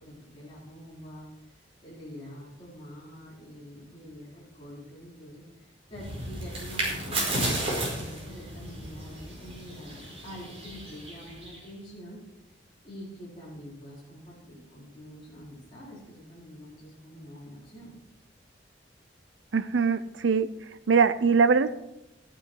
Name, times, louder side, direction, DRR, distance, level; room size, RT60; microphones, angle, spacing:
voice 1, 0.0-1.5 1.8-12.2 12.8-17.9, equal, 25° left, -9 dB, 4.5 m, -46 dB
sound 1, 5.9-11.7, right 1 dB, 35° right, 4.8 m, -33 dB
voice 2, 19.5-20.5 20.9-21.7, right 5 dB, 85° right, 13 dB, 0.6 m, -22 dB
13.5 x 9.9 x 4.7 m, 0.89 s
head